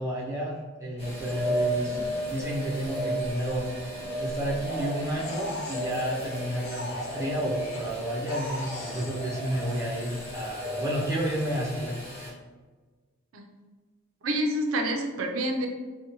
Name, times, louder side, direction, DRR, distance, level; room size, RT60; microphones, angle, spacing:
voice 1, 0.0-2.0 2.3-3.7 4.2-12.0, equal, 15° right, -5 dB, 0.4 m, -31 dB
sound 1, 1.0-12.3, right 1 dB, 30° left, 0.8 m, -34 dB
sound 2, 4.7-8.0 8.3-11.2, equal, 90° left, 0.7 m, -38 dB
voice 2, 14.2-15.7, right 1 dB, 90° right, 3 dB, 0.4 m, -27 dB
2.6 x 2.1 x 2.9 m, 1.3 s
head